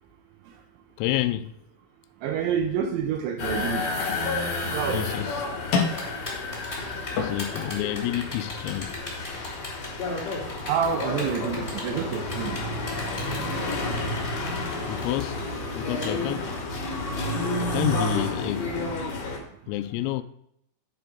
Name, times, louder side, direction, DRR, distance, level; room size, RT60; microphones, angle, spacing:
voice 1, 1.0-1.5 4.9-5.5 7.1-9.0 14.9-15.4 15.7-16.6 17.6-18.7 19.7-20.2, left 14 dB, 85° left, 3.2 m, -29 dB
voice 2, 2.2-3.8 4.7-5.1 10.7-12.6, right 7 dB, 85° right, 2.7 m, -27 dB
sound 1, 3.4-19.4, left 2 dB, 40° left, 2.7 m, -31 dB
sound 2, 3.9-11.9, left 5 dB, 70° left, 2.3 m, -35 dB
Typing, 5.7-16.1, left 2 dB, 15° left, 1.9 m, -39 dB
10.0 x 4.7 x 5.1 m
omnidirectional pair, 5.9 m